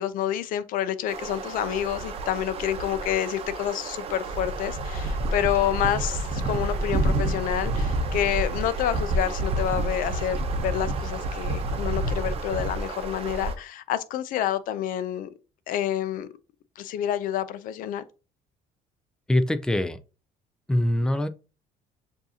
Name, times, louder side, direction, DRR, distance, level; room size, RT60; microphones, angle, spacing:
voice 1, 0.0-15.3 15.7-16.3 16.8-18.0, left 11 dB, 70° left, 0.5 m, -28 dB
sound 1, 1.1-13.5, right 2 dB, 40° right, 0.8 m, -29 dB
Wind instrument woodwind instrument, 5.6-13.4, right 15 dB, 80° right, 0.7 m, -48 dB
voice 2, 19.3-20.0 20.7-21.3, left 1 dB, 5° left, 0.4 m, -23 dB
7.1 x 2.7 x 2.7 m
cardioid pair, 135°, 15 cm